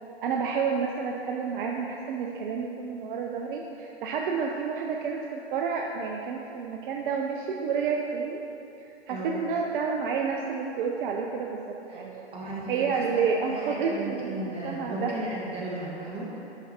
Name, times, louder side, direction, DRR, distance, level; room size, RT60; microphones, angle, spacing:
voice 1, 0.2-8.4 8.8-11.6 11.9-12.3 12.7-15.2, right 5 dB, 50° right, 1 dB, 0.6 m, -30 dB
voice 2, 9.1-9.4 11.9-12.0 12.3-16.4, right 1 dB, 15° right, -5 dB, 1.5 m, -35 dB
9.8 x 5.9 x 2.8 m, 2.9 s
hypercardioid pair, 115°, 33 cm